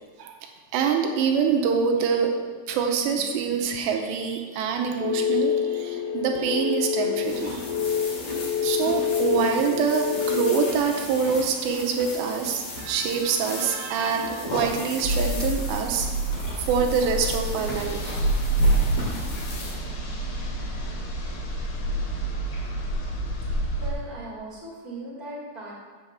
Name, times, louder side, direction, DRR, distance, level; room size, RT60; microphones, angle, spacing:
voice 1, 0.2-2.4 2.7-7.7 8.6-16.1 16.5-18.3, right 6 dB, 85° right, 3 dB, 2.8 m, -25 dB
sound 1, 5.0-10.7, left 7 dB, 90° left, 3.1 m, -27 dB
sound 2, 7.2-19.7, left 2 dB, 45° left, 2.3 m, -36 dB
sound 3, 15.0-23.9, right 1 dB, 70° left, 3.7 m, -27 dB
voice 2, 23.7-25.7, right 1 dB, 20° left, -7 dB, 1.7 m, -38 dB
7.9 x 6.1 x 6.8 m, 1.5 s
omnidirectional pair, 5.1 m